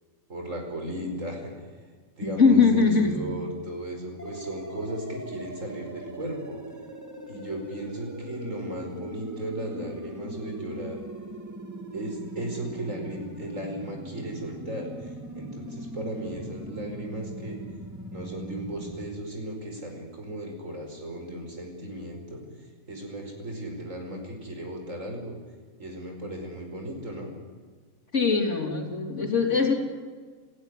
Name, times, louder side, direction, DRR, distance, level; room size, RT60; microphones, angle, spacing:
voice 1, 0.3-1.5 2.2-6.6 7.3-11.0 11.9-17.6 18.1-25.4 25.8-27.3, right 1 dB, 65° right, 2 dB, 5.6 m, -36 dB
voice 2, 2.3-3.2 28.1-29.7, left 5 dB, 55° left, 3 dB, 3.6 m, -21 dB
sound 1, 4.2-19.1, right 1 dB, 10° right, 2.0 m, -40 dB
29.5 x 15.5 x 9.9 m, 1.5 s
omnidirectional pair, 1.5 m